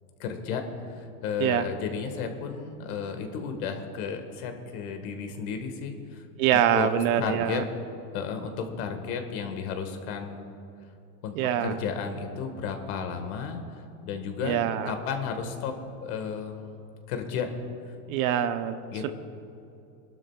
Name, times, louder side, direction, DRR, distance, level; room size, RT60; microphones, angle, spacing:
voice 1, 0.2-6.2 6.5-6.9 7.2-7.6 8.1-10.4 11.2-11.3 11.6-14.6 14.8-15.7 16.0-16.7 17.1-17.5 18.9-19.1, left 6 dB, 70° left, 5 dB, 1.8 m, -33 dB
voice 2, 6.4-7.6 11.3-11.8 14.4-14.9 18.1-18.8 19.0-19.1, right 10 dB, 65° right, 9 dB, 1.0 m, -25 dB
25.0 x 12.0 x 2.4 m, 2.7 s
supercardioid pair, 115°, 45 cm